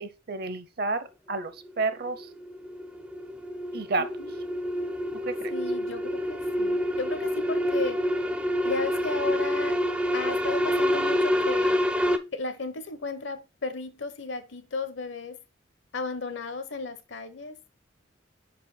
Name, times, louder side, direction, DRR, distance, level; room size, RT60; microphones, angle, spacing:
voice 1, 0.0-2.3 3.7-4.1 5.2-5.5, right 3 dB, 50° right, 0.7 m, -31 dB
sound 1, 1.6-12.2, equal, 5° right, 0.4 m, -27 dB
voice 2, 4.0-4.3 5.5-8.0 8.6-9.8 10.1-11.8 12.3-15.4 15.9-17.6, left 3 dB, 70° left, 0.9 m, -34 dB
5.3 x 4.9 x 4.0 m
head